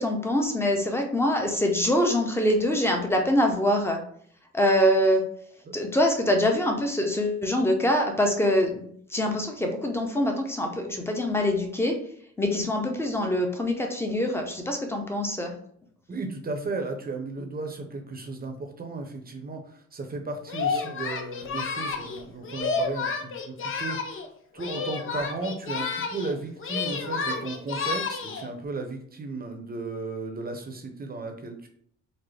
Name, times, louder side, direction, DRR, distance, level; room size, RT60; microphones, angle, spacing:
voice 1, 0.0-4.0 4.5-5.2 5.7-12.0 12.4-15.5, left 1 dB, 10° left, 2 dB, 0.8 m, -24 dB
voice 2, 16.1-24.0 24.5-31.7, right 3 dB, 30° right, 4 dB, 0.8 m, -35 dB
Singing, 20.5-24.3 24.6-26.3 26.6-28.5, left 4 dB, 45° left, 0.6 m, -31 dB
3.9 x 2.1 x 3.3 m, 0.64 s
cardioid pair, 90°, 30 cm